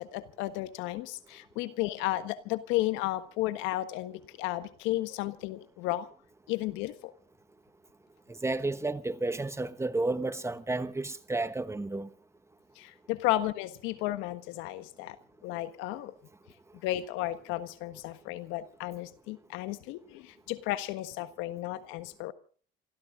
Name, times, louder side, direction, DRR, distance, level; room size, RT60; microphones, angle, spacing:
voice 1, 0.0-6.1 6.5-7.1 12.7-15.2 15.4-16.1 16.8-22.3, left 16 dB, 80° left, 1.5 m, -33 dB
voice 2, 8.3-12.1, right 2 dB, 15° right, 1.3 m, -32 dB
27.0 x 14.0 x 3.8 m
supercardioid pair, 90°, 20 cm